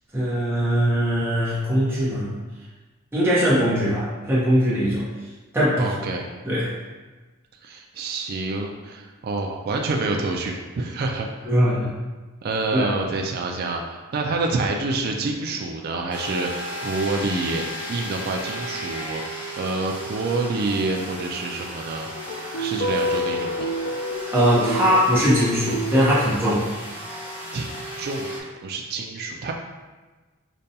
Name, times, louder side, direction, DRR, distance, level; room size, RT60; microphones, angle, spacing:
voice 1, 0.1-2.3 3.1-5.1 5.5-5.9 6.4-6.8 11.4-11.9 12.7-12.9 22.5-22.7 24.3-26.7, equal, 10° right, -9 dB, 0.8 m, -21 dB
voice 2, 5.8-6.3 7.6-11.5 12.4-22.1 22.6-23.7 27.5-27.7 28.0-29.5, right 3 dB, 45° right, 2 dB, 0.3 m, -27 dB
sound 1, 16.1-28.4, equal, 25° left, 0.8 m, -35 dB
sound 2, 22.1-26.3, equal, 55° left, 0.4 m, -29 dB
5.1 x 2.2 x 2.7 m, 1.3 s
head